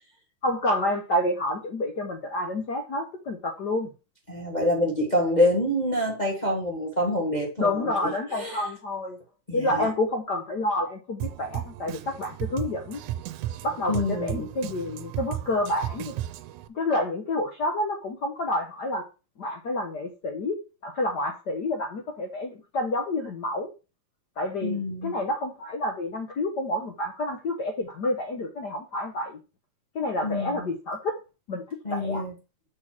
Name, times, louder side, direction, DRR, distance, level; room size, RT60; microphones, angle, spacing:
voice 1, 0.4-3.9 7.6-9.2 9.5-13.0 13.6-16.1 16.7-19.0 19.4-20.6 20.8-23.7 24.4-29.4 29.9-31.1 31.5-31.6 31.9-32.3, left 1 dB, 70° left, 1.0 m, -29 dB
voice 2, 4.3-7.9 8.3-8.6 9.5-9.9 13.9-14.5 24.6-25.2 30.2-30.6 31.8-32.3, left 1 dB, 30° left, 0.7 m, -26 dB
Drum kit, 11.2-16.7, right 13 dB, 85° right, 2.1 m, -35 dB
6.3 x 4.5 x 5.8 m
omnidirectional pair, 3.4 m